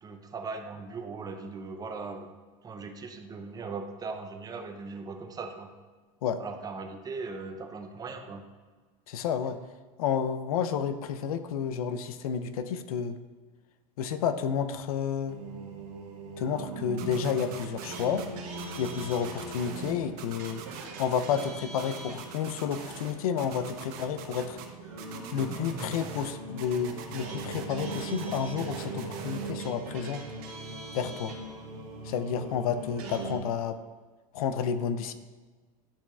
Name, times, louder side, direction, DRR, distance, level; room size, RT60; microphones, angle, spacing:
voice 1, 0.0-2.3 2.6-5.7 6.4-8.4, right 4 dB, 20° right, 5 dB, 0.6 m, -39 dB
voice 2, 9.1-9.6 10.0-13.2 14.0-15.4 16.4-18.3 18.8-20.6 21.0-24.6 25.3-30.2 30.9-31.3 32.0-33.8 34.3-35.1, left 7 dB, 85° left, 11 dB, 0.5 m, -30 dB
midian gates, 15.3-33.4, right 3 dB, 70° right, 1.2 m, -40 dB
sound 1, 17.0-18.3 18.6-19.9 20.2-21.5 21.8-23.1 23.4-24.7 25.0-26.3 26.6-29.5, right 8 dB, 55° right, 0.9 m, -44 dB
10.0 x 4.1 x 2.3 m, 1.4 s
supercardioid pair, 120°, 18 cm